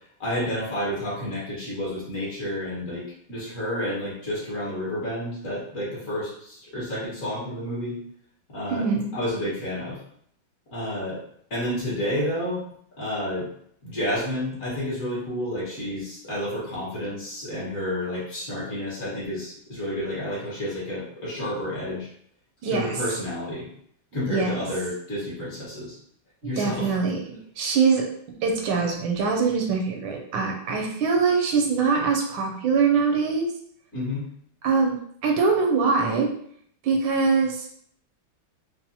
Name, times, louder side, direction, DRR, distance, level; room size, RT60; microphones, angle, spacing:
voice 1, 0.2-8.0 8.5-8.9 9.1-10.0 10.7-11.2 11.5-12.6 13.0-13.5 13.8-22.1 22.7-23.7 24.1-25.9 26.4-26.9 33.9-34.3, left 1 dB, 45° left, -7 dB, 1.7 m, -30 dB
voice 2, 8.7-9.1 22.6-23.0 24.3-24.5 26.6-27.2 27.6-28.1 28.4-33.5 34.6-35.0 35.2-36.3 36.8-37.7, right 5 dB, 80° right, 2 dB, 1.3 m, -23 dB
5.4 x 2.1 x 2.7 m, 0.66 s
omnidirectional pair, 2.1 m